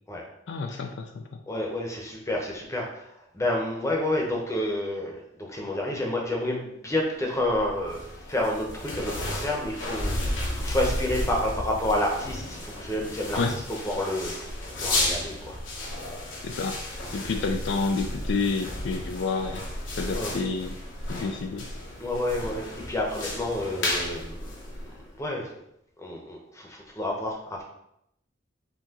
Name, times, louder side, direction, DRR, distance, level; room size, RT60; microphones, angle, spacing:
voice 1, 0.5-1.2 13.3-13.5 16.4-16.8 17.1-19.6 20.0-20.7 21.1-21.6, left 4 dB, 65° left, 5 dB, 0.4 m, -29 dB
voice 2, 1.5-8.0 8.3-14.3 14.7-15.6 17.1-17.4 20.1-20.4 22.0-24.7 25.2-25.5 26.0-27.6, left 1 dB, 15° left, -1 dB, 0.8 m, -29 dB
sound 1, 7.4-25.2, left 1 dB, 80° left, 1.0 m, -33 dB
5.6 x 2.9 x 2.9 m, 0.78 s
head